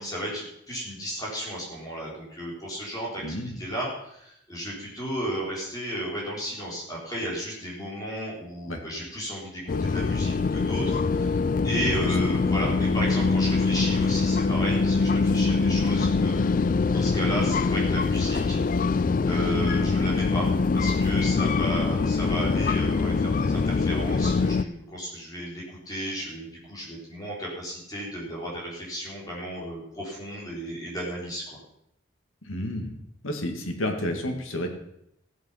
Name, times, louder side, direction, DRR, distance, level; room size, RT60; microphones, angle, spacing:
voice 1, 0.0-18.6 19.3-31.4, equal, 20° left, -5 dB, 4.0 m, -34 dB
voice 2, 3.2-3.6 8.7-8.8 12.2-12.4 32.4-32.9 33.2-34.7, left 1 dB, 90° left, 4 dB, 2.0 m, -31 dB
sound 1, 9.7-24.6, left 4 dB, 45° left, 0.3 m, -24 dB
15.0 x 8.0 x 5.7 m, 0.77 s
head